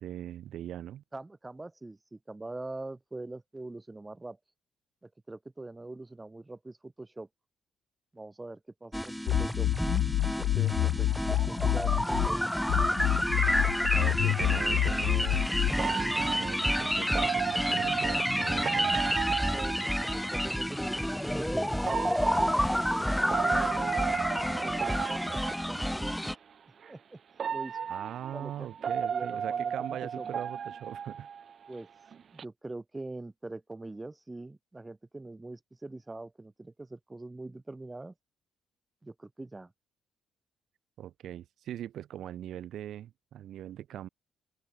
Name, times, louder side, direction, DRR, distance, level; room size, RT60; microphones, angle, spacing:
voice 1, 0.0-1.0 13.9-18.9 27.9-31.3 41.0-44.1, right 11 dB, 75° right, 2.9 m, -41 dB
voice 2, 1.1-4.4 5.0-7.3 8.1-9.7 10.4-12.5 19.4-24.0 24.5-26.2 26.9-27.2 27.5-27.8 28.3-28.5 29.0-30.3 31.7-31.9 32.3-38.1 39.0-39.7, right 2 dB, 15° right, 2.9 m, -43 dB
sound 1, 8.9-26.3, equal, ahead, 0.4 m, -29 dB
sound 2, 9.3-12.3 12.7-15.7, left 15 dB, 90° left, 0.8 m, -28 dB
sound 3, 14.3-14.4 15.8-20.5 21.8-26.0 26.8-26.9 27.4-31.8 32.1-32.4, right 7 dB, 50° right, 0.6 m, -34 dB
open air
cardioid pair, 90°, 0 cm